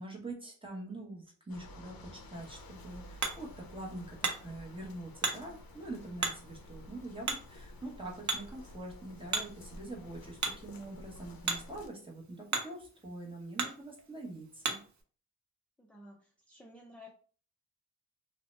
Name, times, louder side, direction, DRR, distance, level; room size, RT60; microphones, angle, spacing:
voice 1, 0.0-14.8, right 2 dB, 15° right, -2 dB, 0.8 m, -44 dB
sound 1, 1.5-11.9, left 1 dB, 75° left, 0.5 m, -52 dB
Hammer, 2.3-15.0, right 4 dB, 50° right, 0.5 m, -40 dB
voice 2, 15.8-17.1, left 1 dB, 5° left, 0 dB, 0.3 m, -53 dB
2.7 x 2.0 x 3.2 m, 0.43 s
wide cardioid pair, 110°, 36 cm